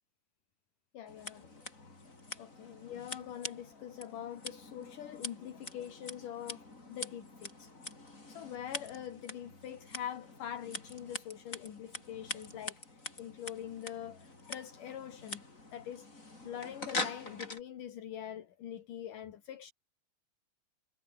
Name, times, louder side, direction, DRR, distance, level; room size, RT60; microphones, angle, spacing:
voice 1, 0.9-2.0 2.3-7.9 8.3-15.4 15.7-16.1 16.4-19.7, left 10 dB, 70° left, 3.5 m, -44 dB
Scissors, 1.1-17.6, left 2 dB, 20° left, 5.1 m, -44 dB
omnidirectional pair, 3.9 m